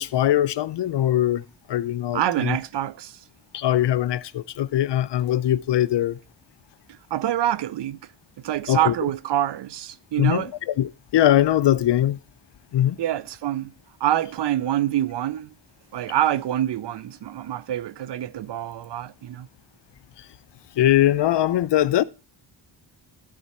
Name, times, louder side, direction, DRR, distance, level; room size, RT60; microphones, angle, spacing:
voice 1, 0.0-1.4 1.7-2.6 3.5-6.2 8.7-8.9 10.2-10.4 10.8-12.2 12.7-13.0 20.8-22.0, left 12 dB, 65° left, 0.6 m, -21 dB
voice 2, 2.1-3.2 6.9-8.1 8.4-10.5 13.0-13.7 14.0-15.5 15.9-19.5, right 12 dB, 65° right, 0.6 m, -26 dB
12.5 x 4.6 x 4.2 m
cardioid pair, 80°, 46 cm